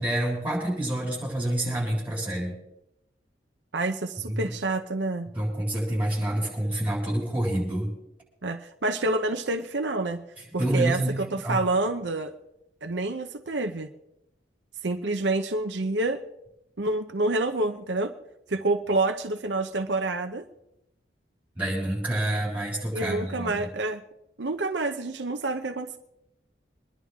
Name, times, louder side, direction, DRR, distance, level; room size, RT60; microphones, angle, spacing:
voice 1, 0.0-2.5 4.3-4.5 5.3-7.9 10.6-11.6 21.5-23.7, right 1 dB, 10° right, -4 dB, 7.6 m, -28 dB
voice 2, 3.7-5.3 8.4-10.2 10.5-12.3 12.8-13.9 14.8-16.2 16.8-18.1 18.5-20.5 22.9-24.0 24.4-26.0, right 2 dB, 75° right, 6 dB, 0.8 m, -28 dB
26.0 x 11.0 x 3.6 m, 0.84 s
head